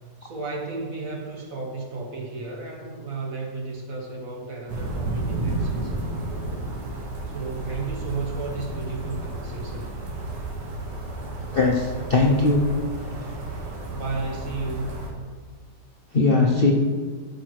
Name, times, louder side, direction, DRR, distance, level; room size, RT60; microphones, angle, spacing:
voice 1, 0.2-6.1 7.3-9.9 13.9-15.0, right 3 dB, 50° right, 0 dB, 1.7 m, -33 dB
sound 1, 4.7-15.1, right 2 dB, 70° right, 2.0 m, -32 dB
voice 2, 11.5-12.7 16.1-16.7, left 3 dB, 45° left, -1 dB, 0.8 m, -19 dB
13.0 x 5.6 x 4.6 m, 1.5 s
omnidirectional pair, 1.9 m